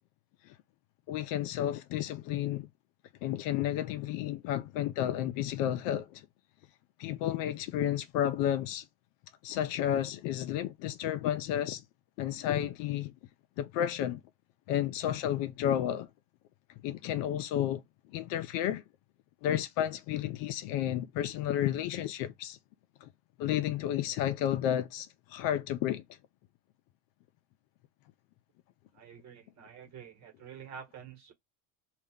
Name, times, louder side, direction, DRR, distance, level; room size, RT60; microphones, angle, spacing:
voice 1, 1.1-2.7 3.2-6.2 7.0-8.8 9.4-11.8 12.2-13.1 13.6-14.2 14.7-16.1 16.8-17.8 18.1-18.8 19.4-22.6 23.0-23.1 23.4-26.0, left 11 dB, 55° left, 0.5 m, -31 dB
voice 2, 28.9-31.3, right 7 dB, 45° right, 1.2 m, -48 dB
2.4 x 2.1 x 3.5 m
hypercardioid pair, 85°, 40 cm